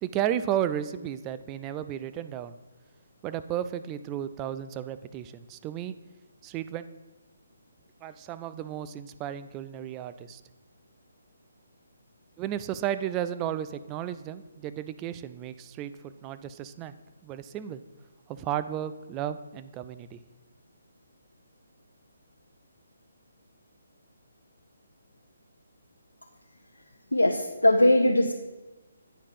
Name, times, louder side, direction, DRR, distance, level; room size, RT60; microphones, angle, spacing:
voice 1, 0.0-2.6 3.2-5.9 6.4-6.8 8.0-10.4 12.4-16.9 17.2-17.8 18.3-20.2, right 10 dB, 20° right, 12 dB, 0.3 m, -33 dB
voice 2, 27.1-28.3, left 1 dB, 85° left, 3 dB, 0.6 m, -20 dB
9.0 x 4.8 x 5.5 m, 1.2 s
figure-of-eight pair, 140°, 0 cm